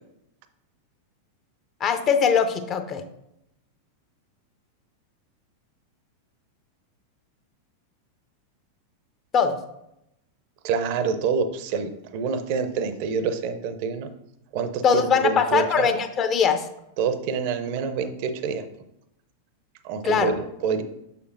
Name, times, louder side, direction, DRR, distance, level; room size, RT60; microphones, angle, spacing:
voice 1, 1.8-3.0 9.3-9.6 14.8-16.7 20.0-20.3, left 6 dB, 30° left, 8 dB, 0.6 m, -21 dB
voice 2, 10.6-14.1 14.5-15.9 17.0-18.6 19.8-20.8, right 6 dB, 45° right, 10 dB, 0.6 m, -27 dB
6.7 x 6.6 x 2.6 m, 0.83 s
figure-of-eight pair, 90°, 0 cm